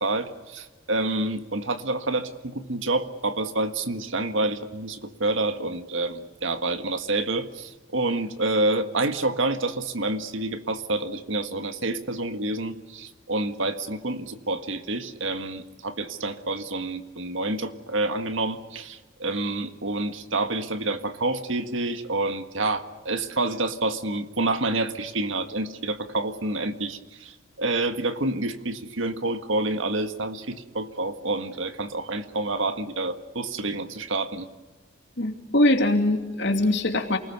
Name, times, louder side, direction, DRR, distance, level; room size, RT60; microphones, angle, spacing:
voice 1, 0.0-34.5, right 2 dB, 70° right, 8 dB, 1.7 m, -28 dB
voice 2, 35.2-37.2, left 1 dB, 60° left, 4 dB, 2.8 m, -22 dB
28.5 x 20.0 x 6.8 m, 1.3 s
head